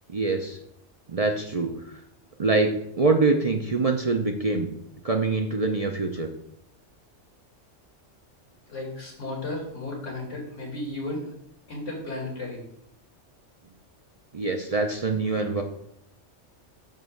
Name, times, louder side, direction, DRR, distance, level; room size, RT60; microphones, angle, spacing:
voice 1, 0.1-0.6 1.1-1.7 2.4-4.7 5.0-6.3 14.3-15.6, right 3 dB, 40° right, 3 dB, 0.6 m, -24 dB
voice 2, 8.7-11.3 11.7-12.6, left 2 dB, 85° left, -2 dB, 2.7 m, -34 dB
9.2 x 3.1 x 6.5 m, 0.73 s
omnidirectional pair, 1.3 m